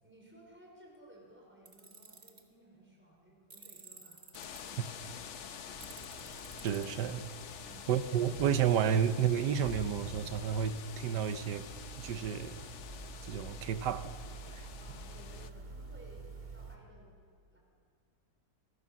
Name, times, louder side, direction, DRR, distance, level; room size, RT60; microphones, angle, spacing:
voice 1, 0.0-4.9 5.3-5.9 7.6-7.9 14.8-17.1 17.5-17.6, right 1 dB, 5° right, 5.2 m, -58 dB
Tools, 1.7-2.4 3.5-4.6 5.8-6.9, right 4 dB, 45° right, 2.3 m, -53 dB
sound 1, 4.3-15.5, left 8 dB, 55° left, 0.9 m, -48 dB
sound 2, 5.7-16.8, right 3 dB, 25° right, 2.1 m, -48 dB
voice 2, 6.6-7.2 7.9-11.7 12.0-12.6 13.2-14.1 14.5-14.7, right 8 dB, 75° right, 1.4 m, -31 dB
25.0 x 18.0 x 7.2 m
omnidirectional pair, 1.9 m